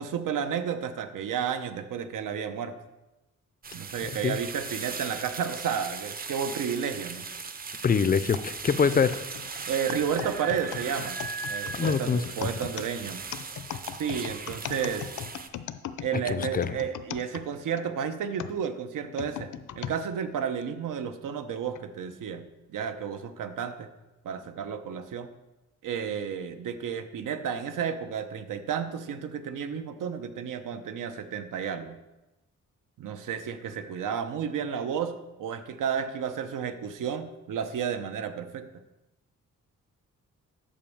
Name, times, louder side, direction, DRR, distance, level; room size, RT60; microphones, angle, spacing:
voice 1, 0.0-2.7 3.7-7.3 9.7-11.2 11.5-13.2 14.0-15.1 16.0-19.5 19.8-23.9 24.2-25.3 25.8-32.0 33.0-38.7, right 7 dB, 85° right, 9 dB, 0.9 m, -32 dB
sound 1, 3.6-15.5, right 5 dB, 30° right, 0.6 m, -38 dB
voice 2, 4.0-4.4 7.8-9.2 11.7-12.2 16.3-16.7, left 6 dB, 30° left, 14 dB, 0.4 m, -25 dB
sound 2, 8.3-17.9 18.4-20.0 20.6-20.7 21.6-21.8, left 10 dB, 70° left, 0.6 m, -38 dB
10.5 x 5.2 x 7.1 m, 1.0 s
wide cardioid pair, 140°, 31 cm